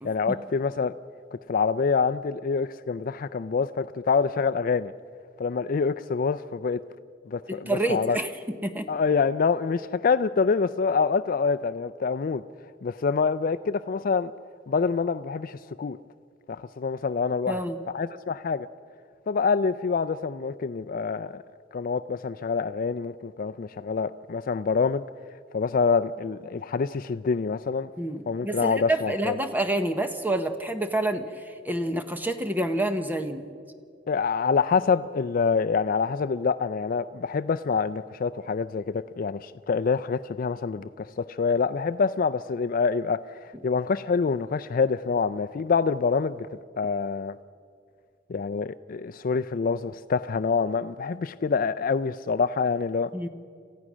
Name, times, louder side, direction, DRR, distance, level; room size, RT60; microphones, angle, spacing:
voice 1, 0.0-0.9 1.3-4.9 5.4-6.8 7.3-8.2 8.9-12.4 12.8-14.3 14.7-16.0 16.5-17.6 17.9-18.7 19.3-21.4 21.7-25.0 25.5-27.9 28.3-29.4 34.1-47.4 48.3-53.1, left 5 dB, 50° left, 0.4 m, -26 dB
voice 2, 7.5-8.9 17.5-17.8 28.0-33.5 53.1-53.3, right 1 dB, 10° right, 0.9 m, -28 dB
27.5 x 15.5 x 6.2 m
head